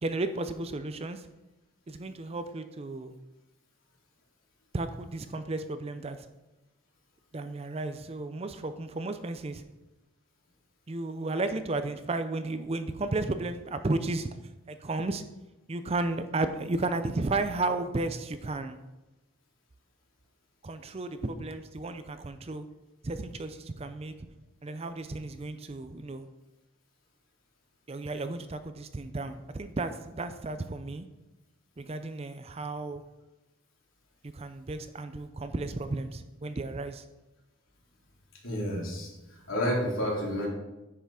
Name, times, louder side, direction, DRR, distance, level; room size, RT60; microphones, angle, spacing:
voice 1, 0.0-1.3 1.9-3.1 4.7-6.2 7.3-9.6 10.9-14.3 14.7-15.2 15.7-18.8 20.6-22.6 23.0-24.1 24.6-26.3 27.9-31.1 31.8-33.0 34.2-37.0, right 2 dB, 30° right, 10 dB, 0.5 m, -33 dB
voice 2, 38.4-40.5, equal, 70° left, -4 dB, 3.2 m, -30 dB
10.0 x 5.8 x 4.8 m, 1.0 s
head